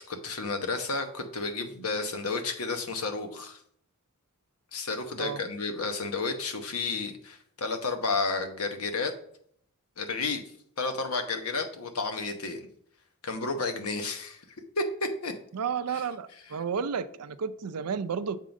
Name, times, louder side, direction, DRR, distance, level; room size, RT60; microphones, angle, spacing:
voice 1, 0.1-3.6 4.7-9.1 10.0-10.4 10.8-12.7 13.2-14.4 14.8-15.3, left 3 dB, 75° left, 1.0 m, -31 dB
voice 2, 15.5-18.4, right 6 dB, 90° right, 0.5 m, -32 dB
7.5 x 3.7 x 5.1 m
head